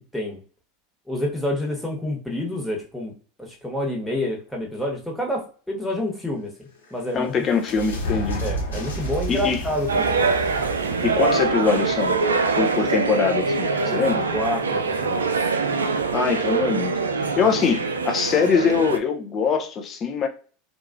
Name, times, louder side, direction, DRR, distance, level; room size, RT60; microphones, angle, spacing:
voice 1, 1.1-3.1 3.4-6.5 6.9-7.5 8.4-10.2 13.7-14.0 14.3-15.4, left 1 dB, ahead, 1.1 m, -28 dB
sound 1, 6.5-13.0, equal, 90° left, 1.3 m, -32 dB
voice 2, 7.1-8.4 9.3-9.6 11.0-12.2 12.6-14.2 16.1-20.3, left 6 dB, 35° left, 0.6 m, -23 dB
sound 2, 9.9-19.0, right 4 dB, 85° right, 0.3 m, -23 dB
2.9 x 2.3 x 2.5 m
hypercardioid pair, 85°, 0 cm